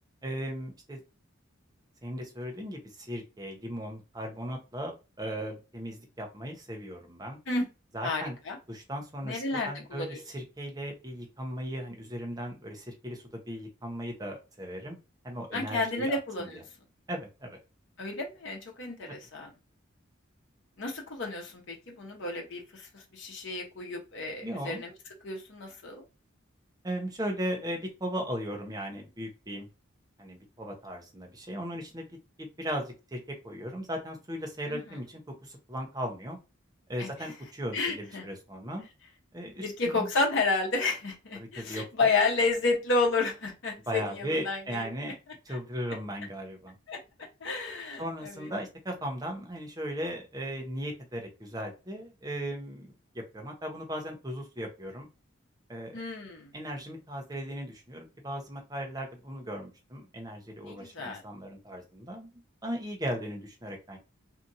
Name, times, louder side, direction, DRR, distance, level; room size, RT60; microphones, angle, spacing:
voice 1, 0.2-1.0 2.0-7.4 7.9-8.4 8.7-15.0 15.2-16.2 17.1-17.6 24.4-24.8 26.8-29.7 30.2-32.1 32.4-36.4 36.9-38.9 39.3-39.7 39.9-40.1 41.3-41.8 43.9-45.2 45.5-46.7 48.0-52.9 53.1-55.1 55.7-56.0 56.5-62.3 62.6-64.0, equal, 20° right, 2 dB, 0.7 m, -37 dB
voice 2, 8.0-8.6 9.2-10.2 15.5-16.6 18.0-19.5 20.8-24.9 25.2-26.0 34.7-34.8 37.0-37.1 37.7-38.2 39.6-44.8 46.9-47.0 47.4-48.5 55.9-56.5 60.6-61.2, left 3 dB, 60° left, 1 dB, 0.8 m, -31 dB
2.8 x 2.5 x 2.6 m, 0.28 s
head